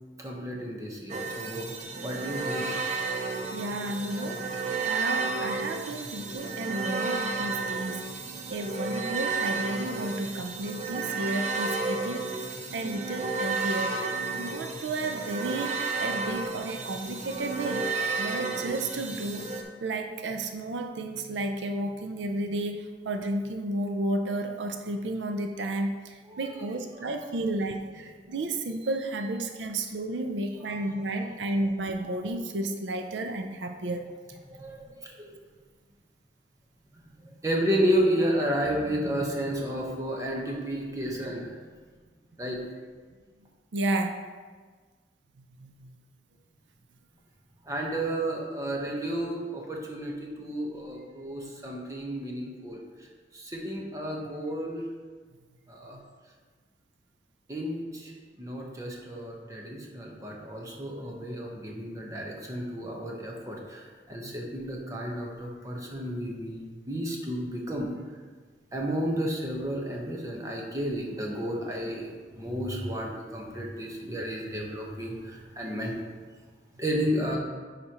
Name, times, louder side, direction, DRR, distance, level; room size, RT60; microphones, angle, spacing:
voice 1, 0.2-1.7 2.0-2.7 26.3-26.4 27.0-27.5 30.6-30.8 31.1-31.3 32.0-32.1 34.5-35.4 37.2-41.5 42.4-42.6 47.6-52.8 53.3-54.8 55.7-56.0 57.5-58.1 58.4-67.9 68.7-76.0 76.8-77.4, equal, 20° right, -2 dB, 1.1 m, -32 dB
sound 1, 1.1-19.6, right 4 dB, 40° right, 0.7 m, -32 dB
voice 2, 3.5-4.5 4.8-8.1 8.5-12.4 12.7-14.0 14.4-15.7 16.0-17.9 18.2-19.5 19.8-34.1 43.7-44.2 45.6-45.9 55.9-56.0 64.2-64.3, right 2 dB, 90° right, 6 dB, 0.5 m, -32 dB
9.7 x 5.0 x 3.0 m, 1.5 s
head